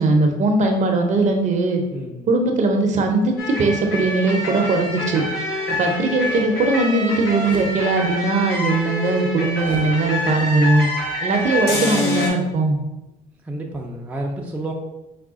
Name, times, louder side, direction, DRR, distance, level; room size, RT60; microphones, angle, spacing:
voice 1, 0.0-1.8 2.3-5.2 5.7-10.9 11.2-12.8, right 2 dB, 45° right, 3 dB, 0.7 m, -19 dB
voice 2, 1.9-2.3 13.4-14.7, right 1 dB, 10° right, -1 dB, 0.5 m, -30 dB
sound 1, 3.4-12.3, left 1 dB, 75° left, 1.1 m, -26 dB
sound 2, 7.4-7.8 9.6-9.9, left 2 dB, 30° left, 0.7 m, -35 dB
4.9 x 2.2 x 3.6 m, 0.98 s
cardioid pair, 110°, 17 cm